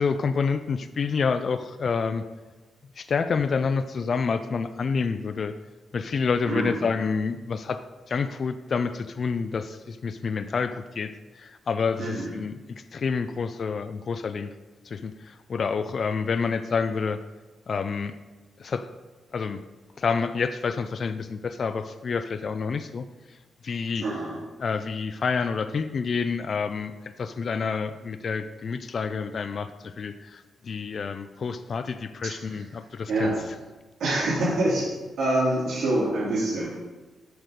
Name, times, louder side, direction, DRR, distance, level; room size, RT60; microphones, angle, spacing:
voice 1, 0.0-2.2 3.0-5.5 5.9-12.6 12.9-14.5 14.8-17.2 17.7-18.1 18.6-18.9 19.3-19.6 20.0-23.0 23.6-24.1 24.6-26.9 27.2-33.3, left 5 dB, 45° left, 10 dB, 0.4 m, -28 dB
voice 2, 6.4-6.8 12.0-12.3 24.0-24.4 32.2-32.6 33.1-33.4 34.0-36.7, right 1 dB, 80° right, -10 dB, 2.9 m, -26 dB
7.8 x 5.2 x 6.5 m, 1.2 s
wide cardioid pair, 140°, 0 cm